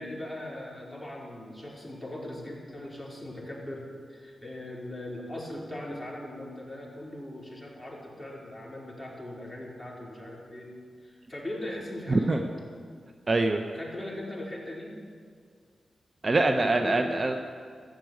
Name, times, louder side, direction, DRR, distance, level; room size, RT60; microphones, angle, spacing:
voice 1, 0.0-10.7 11.0-12.5 13.7-15.0 16.2-17.2, left 1 dB, ahead, -4 dB, 4.4 m, -39 dB
voice 2, 12.1-12.4 13.3-13.7 16.2-17.3, right 2 dB, 40° right, 6 dB, 0.8 m, -24 dB
13.5 x 7.7 x 9.3 m, 2.1 s
cardioid pair, 55°, 0 cm